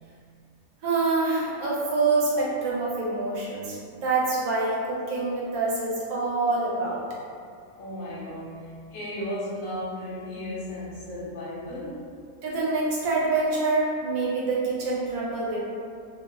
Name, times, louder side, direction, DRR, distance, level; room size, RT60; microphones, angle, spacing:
voice 1, 0.8-7.0 12.4-15.6, right 3 dB, 70° right, -5 dB, 1.0 m, -26 dB
voice 2, 7.8-12.1, left 1 dB, 65° left, -7 dB, 1.1 m, -35 dB
2.7 x 2.0 x 3.3 m, 2.3 s
omnidirectional pair, 1.5 m